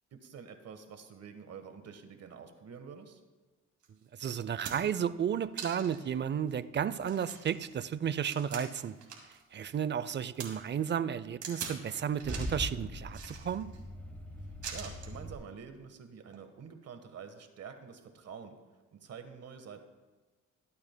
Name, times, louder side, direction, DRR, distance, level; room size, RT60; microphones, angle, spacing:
voice 1, 0.1-3.2 14.7-18.6 18.9-19.8, right 6 dB, 55° right, 7 dB, 1.4 m, -47 dB
sound 1, 3.8-3.9 4.4-5.0 5.6-6.1 6.5-6.6 7.0-9.4 9.7-10.5 11.4-11.8 12.2-12.6 13.1-13.8 14.6-15.2 16.2-16.4, right 7 dB, 75° right, 2.3 m, -43 dB
voice 2, 4.2-8.9 9.5-13.7, right 8 dB, 40° right, 15 dB, 0.5 m, -33 dB
Car / Engine starting / Idling, 11.9-15.3, equal, 5° left, 1.7 m, -41 dB
22.0 x 8.7 x 2.2 m, 1.3 s
cardioid pair, 90°, 30 cm